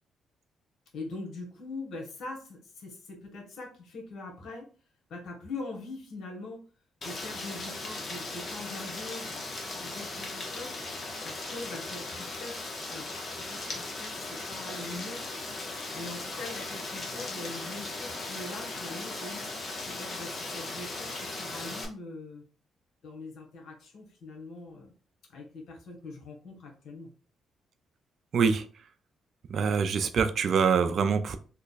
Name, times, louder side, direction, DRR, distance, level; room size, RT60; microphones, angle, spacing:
voice 1, 0.9-4.7 5.1-6.6 7.0-10.7 11.2-13.1 13.4-15.2 15.9-19.4 19.9-22.4 23.0-24.9 25.3-27.1, left 2 dB, 70° left, 2 dB, 1.1 m, -42 dB
Rain, 7.0-21.8, left 2 dB, 45° left, 0.9 m, -38 dB
voice 2, 28.3-28.6 29.5-31.4, right 6 dB, 55° right, 10 dB, 0.4 m, -25 dB
3.1 x 2.2 x 4.0 m, 0.39 s
cardioid pair, 90°, 0 cm